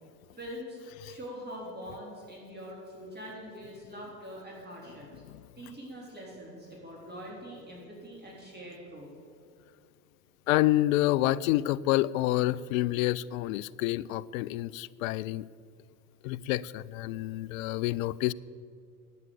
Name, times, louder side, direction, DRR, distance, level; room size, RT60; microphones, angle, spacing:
voice 1, 0.4-5.1 5.6-9.1, equal, 20° right, -3 dB, 3.9 m, -43 dB
voice 2, 10.5-15.5 16.2-18.3, left 16 dB, 60° left, 18 dB, 0.5 m, -28 dB
10.5 x 9.1 x 8.0 m, 2.3 s
figure-of-eight pair, 70°, 47 cm